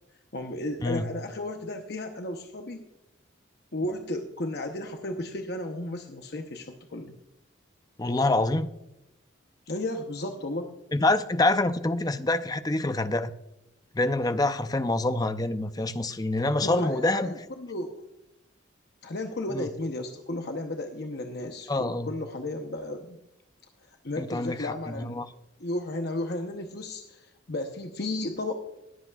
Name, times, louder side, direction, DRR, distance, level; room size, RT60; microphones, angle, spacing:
voice 1, 0.3-2.8 3.7-7.2 9.7-10.7 16.6-18.0 19.0-23.2 24.0-25.2 25.6-28.5, left 1 dB, 55° left, 0.8 m, -34 dB
voice 2, 8.0-8.7 10.9-13.3 13.9-17.4 19.5-19.6 21.7-22.1 24.2-25.2, left 2 dB, 20° left, 0.5 m, -26 dB
20.5 x 8.2 x 2.4 m
head